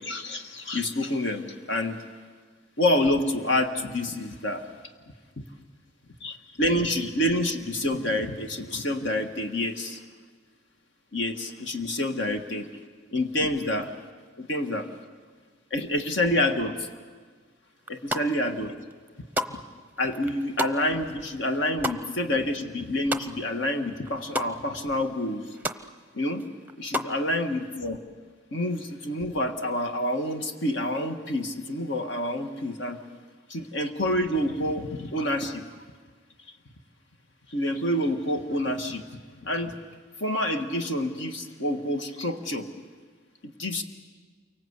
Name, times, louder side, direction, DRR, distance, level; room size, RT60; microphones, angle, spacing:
voice 1, 0.0-2.0 2.8-4.7 5.4-5.5 6.2-10.0 11.1-12.7 13.1-13.9 14.4-14.9 15.7-16.9 17.9-18.8 20.0-25.6 26.1-26.4 26.8-28.0 28.5-33.0 33.5-35.6 37.5-39.0 39.4-39.7 40.2-42.7 43.4-43.8, left 1 dB, 65° left, 6 dB, 1.6 m, -28 dB
sound 1, 17.8-18.5 18.9-23.7 23.9-24.5 24.9-25.0 25.2-25.8 26.2-27.2, equal, 10° right, 0.7 m, -32 dB
29.0 x 24.5 x 8.2 m, 1.5 s
head